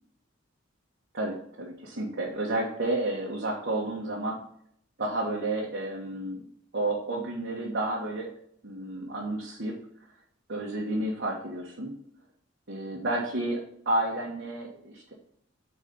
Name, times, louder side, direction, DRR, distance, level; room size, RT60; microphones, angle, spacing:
voice 1, 1.1-4.4 5.0-6.4 6.7-8.3 8.6-9.8 10.5-11.9 12.7-15.1, right 1 dB, 55° right, -3 dB, 1.4 m, -31 dB
8.1 x 4.2 x 5.3 m, 0.66 s
head